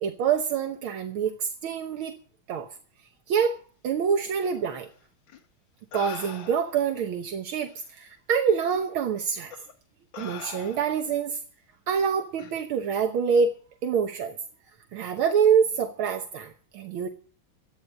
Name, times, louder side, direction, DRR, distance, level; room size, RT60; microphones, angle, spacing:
voice 1, 0.0-2.2 2.5-2.7 3.3-3.6 3.8-4.9 5.9-9.5 10.2-11.4 11.9-13.5 13.8-14.4 14.9-17.1, right 7 dB, 75° right, 5 dB, 1.9 m, -26 dB
sound 1, 5.3-5.4 5.9-6.9 7.7-7.8 8.7-8.9 9.5-9.7 10.1-11.1 12.4-12.6, left 7 dB, 65° left, 2.0 m, -42 dB
12.5 x 9.4 x 8.0 m, 0.43 s
omnidirectional pair, 2.3 m